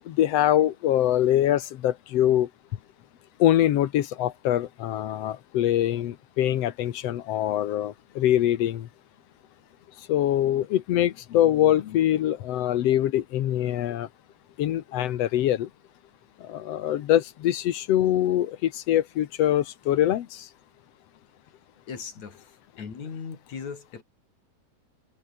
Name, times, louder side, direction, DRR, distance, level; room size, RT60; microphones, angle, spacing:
voice 1, 0.1-2.5 3.4-8.9 10.1-14.1 14.6-15.7 16.4-20.4, left 12 dB, 70° left, 1.6 m, -24 dB
voice 2, 21.9-22.5 22.8-24.0, left 6 dB, 50° left, 4.8 m, -38 dB
omnidirectional pair, 4.2 m